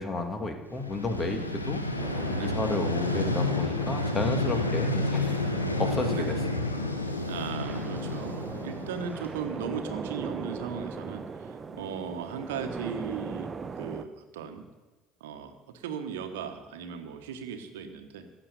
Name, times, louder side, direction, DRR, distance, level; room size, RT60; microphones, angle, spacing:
voice 1, 0.0-1.8 2.4-5.4 5.8-6.7, left 2 dB, 25° left, 5 dB, 1.9 m, -32 dB
Vehicle, 0.7-9.7, left 2 dB, 85° left, 0.9 m, -30 dB
voice 2, 1.2-1.5 2.3-2.6 4.5-4.8 5.4-5.8 6.1-6.4 7.3-13.5 13.8-14.6 15.2-18.3, right 7 dB, 65° right, 7 dB, 1.2 m, -38 dB
sound 1, 2.0-14.0, right 4 dB, 25° right, 0.8 m, -39 dB
15.5 x 6.5 x 8.0 m, 1.2 s
figure-of-eight pair, 60°, 0 cm